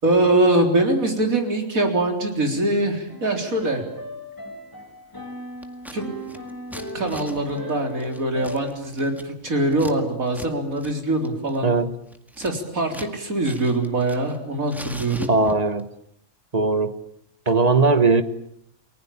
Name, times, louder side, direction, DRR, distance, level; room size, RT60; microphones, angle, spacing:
voice 1, 0.0-3.8 5.9-6.0 6.9-11.7 12.4-15.3, right 2 dB, 75° right, 4.4 m, -23 dB
sound 1, 3.1-8.6, equal, 15° left, 3.8 m, -37 dB
Scissors, 5.6-6.0 6.2-10.0 10.3-10.5 10.8-10.9 11.3-13.1 13.4-14.4 14.7-15.8, equal, ahead, 1.9 m, -40 dB
voice 2, 11.6-11.9 15.3-15.9 16.5-17.0 17.5-18.2, right 3 dB, 30° right, 1.4 m, -19 dB
29.0 x 20.5 x 8.7 m
omnidirectional pair, 1.5 m